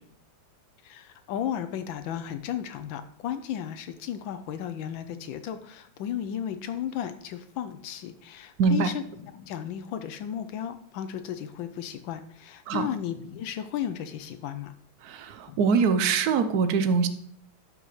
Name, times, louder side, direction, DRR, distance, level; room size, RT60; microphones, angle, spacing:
voice 1, 0.8-14.7 15.5-15.6, left 9 dB, 75° left, 10 dB, 1.3 m, -34 dB
voice 2, 8.6-8.9 12.7-12.9 15.0-17.1, right 5 dB, 65° right, 10 dB, 1.0 m, -23 dB
11.5 x 5.3 x 3.1 m, 0.64 s
omnidirectional pair, 2.2 m